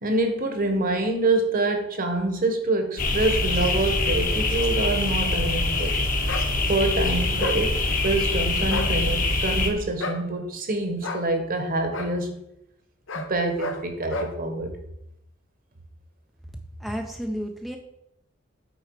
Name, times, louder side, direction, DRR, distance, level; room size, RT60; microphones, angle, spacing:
voice 1, 0.0-5.9 6.7-7.8 8.0-12.4 13.1-14.7, right 2 dB, 45° right, 5 dB, 1.2 m, -26 dB
sound 1, 3.0-9.7, left 2 dB, 45° left, 1.2 m, -24 dB
sound 2, 6.3-6.5 7.4-7.6 8.6-8.9 10.0-10.2 11.0-11.3 11.9-12.1 13.1-13.3 13.6-13.8 14.1-14.3, left 2 dB, 75° left, 0.9 m, -31 dB
voice 2, 16.8-17.8, equal, ahead, 3 dB, 0.5 m, -31 dB
8.2 x 4.5 x 4.7 m, 0.80 s
head